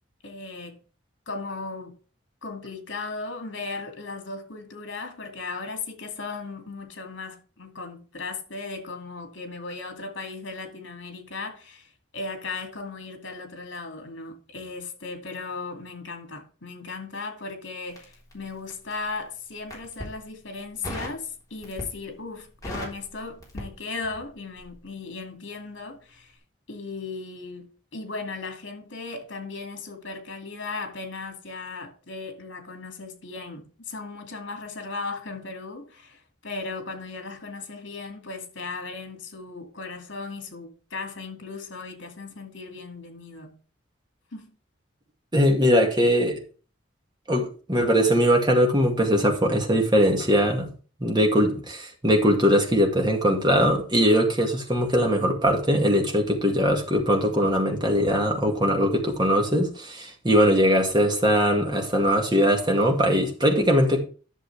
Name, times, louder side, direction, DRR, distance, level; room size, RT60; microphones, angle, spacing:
voice 1, 0.2-0.8 1.3-2.0 2.4-26.4 26.7-43.6 44.3-44.5, left 3 dB, 75° left, 2.5 m, -37 dB
Crackle, 17.9-19.0 19.6-20.2 20.8-21.2 21.6-22.1 22.4-24.3 24.6-24.8, left 1 dB, 20° left, 3.7 m, -37 dB
voice 2, 45.3-46.4 47.3-50.7 51.0-64.0, equal, 25° right, 2.0 m, -21 dB
11.0 x 6.8 x 3.4 m
head